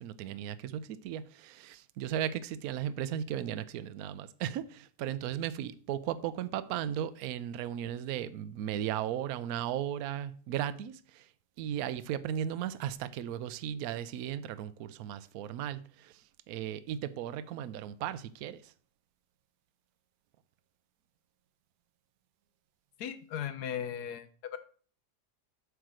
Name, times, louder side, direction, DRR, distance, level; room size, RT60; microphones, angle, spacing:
voice 1, 0.0-11.3 11.6-18.7, right 10 dB, 70° right, 1.0 m, -36 dB
voice 2, 23.0-24.6, left 9 dB, 80° left, 1.4 m, -37 dB
8.1 x 4.7 x 6.3 m
omnidirectional pair, 1.7 m